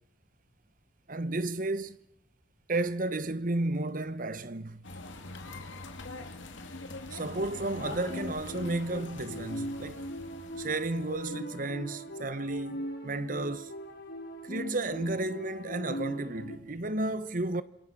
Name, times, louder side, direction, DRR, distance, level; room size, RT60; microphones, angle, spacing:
voice 1, 1.1-2.0 2.7-4.8 7.1-10.1 10.6-13.7 14.4-17.6, right 2 dB, 45° right, 1.0 m, -32 dB
sound 1, 4.8-11.3, left 2 dB, 80° left, 2.4 m, -44 dB
sound 2, 7.8-16.6, equal, 55° left, 2.4 m, -40 dB
26.5 x 23.0 x 6.1 m
head